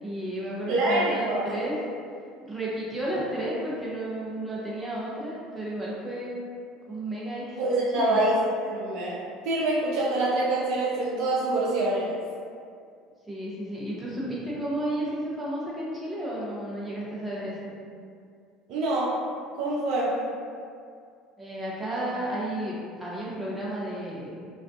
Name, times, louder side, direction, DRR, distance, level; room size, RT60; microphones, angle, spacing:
voice 1, 0.0-1.8 2.4-6.4 6.9-8.2 13.3-17.7 21.4-24.3, right 1 dB, 10° right, -7 dB, 0.7 m, -32 dB
voice 2, 0.7-1.6 7.6-8.4 8.6-9.2 9.4-12.2 18.7-19.1 19.6-20.2, right 2 dB, 55° right, -6 dB, 0.4 m, -25 dB
2.3 x 2.2 x 2.5 m, 2.3 s
figure-of-eight pair, 65°, 0 cm